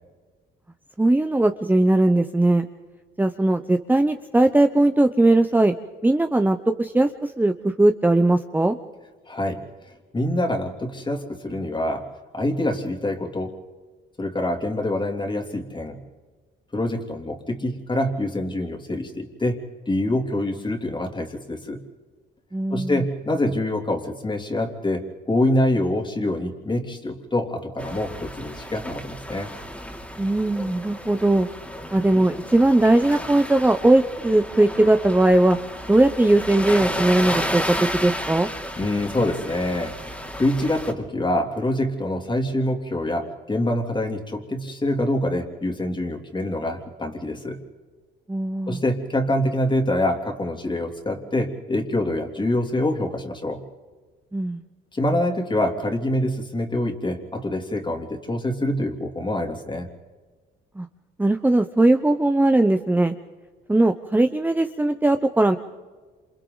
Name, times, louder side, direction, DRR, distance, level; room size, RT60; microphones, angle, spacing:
voice 1, 1.0-2.7 3.2-5.7 6.0-8.8 22.5-23.0 30.2-31.5 31.9-35.6 35.9-38.5 48.3-48.8 54.3-54.6 60.8-60.9 61.2-63.1 63.7-65.6, right 2 dB, 10° right, 7 dB, 0.9 m, -19 dB
voice 2, 9.3-9.6 10.1-12.1 12.3-13.5 14.2-16.0 16.7-19.6 19.9-21.8 22.7-29.5 38.8-47.6 48.7-53.6 54.9-59.9, left 1 dB, 25° left, 3 dB, 3.1 m, -25 dB
sound 1, 27.8-40.9, equal, 5° left, 2.9 m, -32 dB
28.0 x 28.0 x 4.0 m, 1.4 s
cardioid pair, 90°, 20 cm